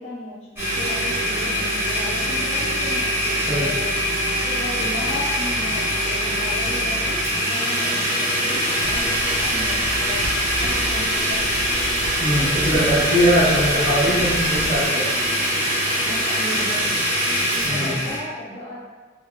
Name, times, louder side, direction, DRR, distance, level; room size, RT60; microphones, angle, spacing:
voice 1, 0.0-3.9 4.4-11.5 12.7-12.9 13.3-13.6 16.0-16.8 17.4-18.8, left 1 dB, 35° left, -6 dB, 0.4 m, -35 dB
Domestic sounds home sounds, 0.6-18.2, equal, 15° right, 0.7 m, -23 dB
sound 1, 3.8-17.1, equal, ahead, 1.1 m, -42 dB
sound 2, 8.8-14.8, right 1 dB, 50° right, 0.4 m, -34 dB
voice 2, 12.2-15.1 17.6-17.9, equal, 30° right, -10 dB, 1.1 m, -21 dB
3.6 x 2.2 x 2.2 m, 1.4 s
head